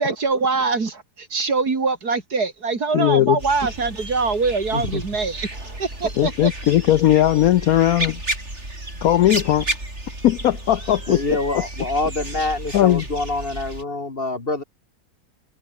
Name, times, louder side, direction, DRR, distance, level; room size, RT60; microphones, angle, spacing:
voice 1, 0.0-6.5, right 4 dB, 60° right, 3.4 m, -23 dB
voice 2, 2.9-3.4 6.2-8.2 9.0-9.6 10.2-11.2 12.7-13.0, left 13 dB, 65° left, 0.9 m, -18 dB
sound 1, 3.4-13.8, right 1 dB, 40° right, 7.5 m, -32 dB
voice 3, 4.7-5.0 11.1-14.6, left 2 dB, 30° left, 2.2 m, -26 dB
omnidirectional pair, 1.9 m